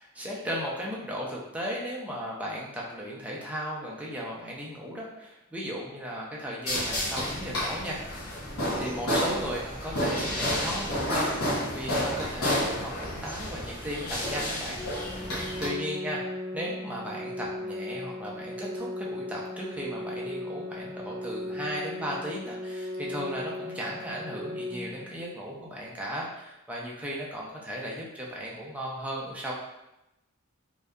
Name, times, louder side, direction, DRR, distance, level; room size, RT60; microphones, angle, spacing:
voice 1, 0.2-8.0 8.8-14.8 15.3-16.2 16.5-29.5, equal, 5° right, -4 dB, 0.4 m, -36 dB
sound 1, 6.7-15.7, equal, 80° left, 0.8 m, -30 dB
Organ, 14.7-25.7, left 1 dB, 15° left, 0.8 m, -37 dB
2.6 x 2.3 x 2.2 m, 0.91 s
head